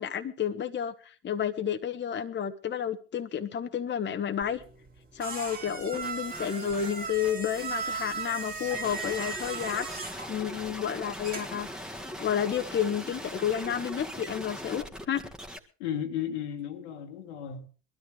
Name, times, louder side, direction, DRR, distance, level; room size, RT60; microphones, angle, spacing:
voice 1, 0.0-4.6 5.1-9.9 10.3-11.7 12.2-15.2, left 9 dB, 35° left, 1.3 m, -31 dB
sound 1, 4.4-11.7, right 5 dB, 25° right, 2.6 m, -38 dB
sound 2, 5.9-15.6, equal, ahead, 1.9 m, -41 dB
voice 2, 15.8-17.7, left 9 dB, 80° left, 2.1 m, -34 dB
21.0 x 13.0 x 3.5 m
hypercardioid pair, 80°, 33 cm